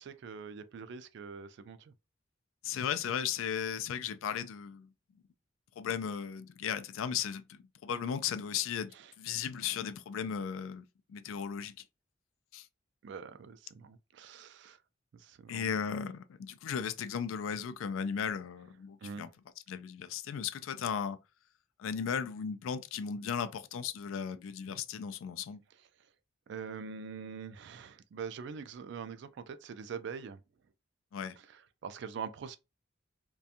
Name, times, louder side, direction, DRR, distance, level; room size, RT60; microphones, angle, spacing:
voice 1, 0.0-1.9 8.9-9.1 13.0-14.8 15.1-15.7 19.0-19.3 26.5-30.4 31.4-32.6, right 6 dB, 60° right, 0.3 m, -44 dB
voice 2, 2.6-4.9 5.8-11.7 12.5-12.7 15.5-19.3 19.7-21.2 21.8-25.6 31.1-31.4, left 7 dB, 90° left, 0.3 m, -36 dB
2.5 x 2.2 x 2.7 m
head